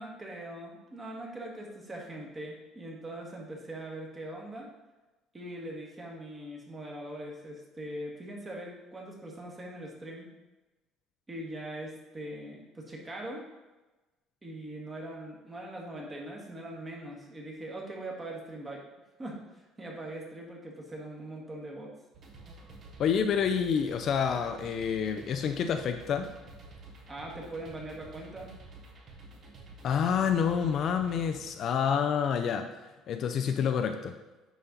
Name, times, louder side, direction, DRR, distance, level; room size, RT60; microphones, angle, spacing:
voice 1, 0.0-4.7 5.3-10.3 11.3-13.4 14.4-18.8 19.2-21.9 27.1-28.5, right 1 dB, 20° right, -1 dB, 1.5 m, -41 dB
sound 1, 22.1-31.5, right 2 dB, 40° right, 1.2 m, -50 dB
voice 2, 23.0-26.3 29.8-32.7 33.1-34.1, left 7 dB, 45° left, 7 dB, 0.5 m, -28 dB
9.8 x 4.2 x 3.9 m, 1.1 s
cardioid pair, 150°, 0 cm